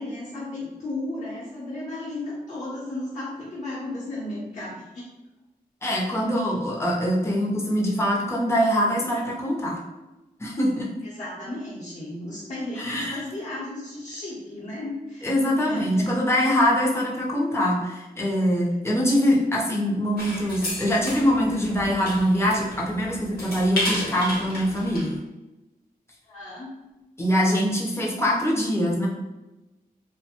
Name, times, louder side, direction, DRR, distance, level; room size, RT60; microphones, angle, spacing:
voice 1, 0.0-5.1 5.9-6.0 11.0-15.4 15.7-16.1 18.8-19.0 26.3-26.7, left 1 dB, 45° left, -10 dB, 0.9 m, -34 dB
voice 2, 5.8-9.8 10.4-10.9 12.8-13.2 15.2-25.1 27.2-29.1, equal, 15° left, -3 dB, 0.6 m, -23 dB
sound 1, 20.2-25.2, left 1 dB, 85° left, 0.9 m, -33 dB
2.4 x 2.1 x 2.8 m, 1.0 s
cardioid pair, 80°, 16 cm